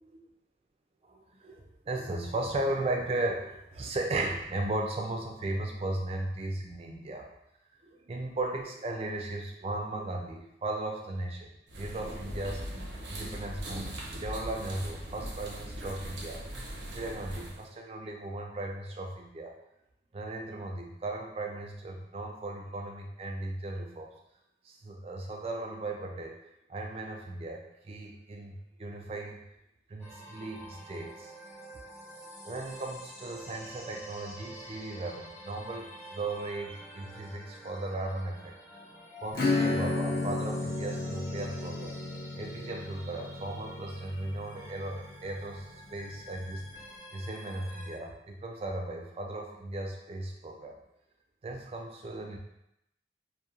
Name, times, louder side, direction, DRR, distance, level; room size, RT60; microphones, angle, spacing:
voice 1, 1.1-7.2 7.8-12.8 13.1-16.4 16.9-19.5 20.1-24.1 24.6-26.4 26.7-29.4 29.9-31.3 32.5-38.5 39.2-41.9 42.4-50.8 51.4-52.4, right 2 dB, 35° right, 2 dB, 0.3 m, -36 dB
sound 1, 11.7-17.7, right 1 dB, 90° right, 0.5 m, -40 dB
sound 2, 30.0-47.9, right 1 dB, 15° left, 0.8 m, -48 dB
Acoustic guitar / Strum, 39.3-45.6, left 3 dB, 55° left, 0.5 m, -33 dB
2.8 x 2.1 x 2.4 m, 0.82 s
head